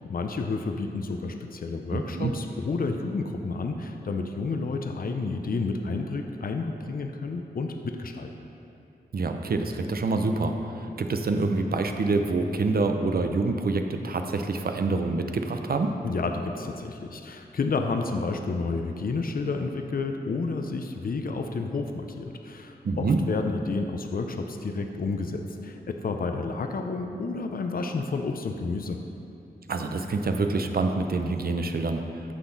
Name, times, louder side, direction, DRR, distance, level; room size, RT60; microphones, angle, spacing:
voice 1, 0.0-8.3 16.0-29.0, left 3 dB, 60° left, 5 dB, 0.7 m, -30 dB
voice 2, 1.9-2.3 9.1-15.9 22.8-23.2 29.7-32.0, right 3 dB, 65° right, 5 dB, 0.7 m, -26 dB
14.5 x 5.9 x 4.1 m, 2.7 s
cardioid pair, 65°, 17 cm